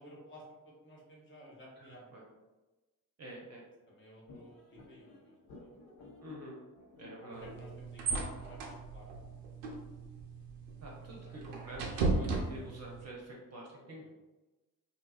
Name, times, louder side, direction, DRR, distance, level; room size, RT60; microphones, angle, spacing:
voice 1, 0.0-2.1 3.9-5.8 7.4-9.1 11.2-11.4 14.0-14.1, equal, 25° left, -5 dB, 1.0 m, -54 dB
voice 2, 1.8-2.2 3.2-3.6 6.2-6.6 7.0-7.5 10.8-14.2, right 1 dB, 35° right, -3 dB, 0.8 m, -48 dB
sound 1, 4.3-9.4, left 2 dB, 60° left, 0.8 m, -55 dB
sound 2, 7.3-13.1, right 3 dB, 75° right, 0.6 m, -37 dB
2.7 x 2.4 x 2.4 m, 1.1 s
figure-of-eight pair, 40°, 47 cm